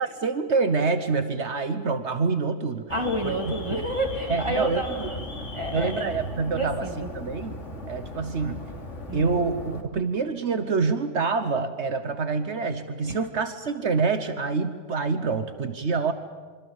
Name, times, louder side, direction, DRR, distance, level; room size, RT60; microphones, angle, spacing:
voice 1, 0.0-2.9 3.2-3.5 4.3-5.1 5.7-6.9 7.1-8.6 9.1-16.1, right 4 dB, 65° right, 9 dB, 1.4 m, -26 dB
Alarm, 2.9-9.8, left 1 dB, 75° left, 3.2 m, -37 dB
voice 2, 2.9-6.0 6.5-7.1 9.1-9.4 13.0-13.2, equal, 25° right, 4 dB, 2.2 m, -30 dB
26.5 x 25.0 x 7.3 m, 1.6 s
omnidirectional pair, 1.2 m